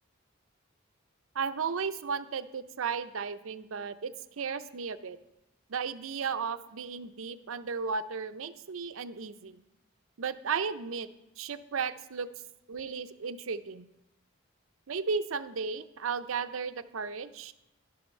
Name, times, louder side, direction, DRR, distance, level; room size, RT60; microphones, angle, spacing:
voice 1, 1.3-5.2 5.7-9.6 10.2-11.1 11.4-12.3 12.7-13.9 14.9-17.5, right 5 dB, 70° right, 11 dB, 0.6 m, -34 dB
11.5 x 5.7 x 6.4 m, 0.93 s
head